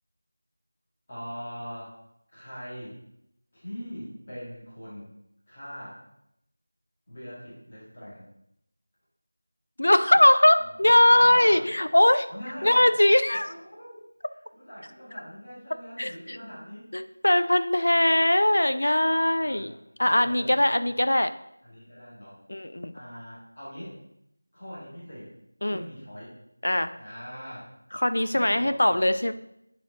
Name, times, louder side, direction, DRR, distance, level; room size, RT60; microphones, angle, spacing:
voice 1, 1.1-2.0 2.3-3.0 3.5-5.1 5.5-6.0 7.1-8.3 10.6-11.7 12.3-13.0 13.3-14.0 14.5-16.9 19.3-19.8 20.0-20.9 21.6-22.4 22.9-24.0 24.5-25.3 25.7-26.4 27.0-27.7 28.3-29.2, equal, 20° left, -9 dB, 1.7 m, -41 dB
voice 2, 9.8-12.3 12.6-13.5 16.0-16.4 16.9-19.7 20.0-21.3 22.5-22.9 25.6-25.8 26.6-26.9 27.9-29.3, left 1 dB, 60° left, 11 dB, 0.4 m, -21 dB
10.0 x 4.3 x 3.6 m, 0.79 s
figure-of-eight pair, 180°, 0 cm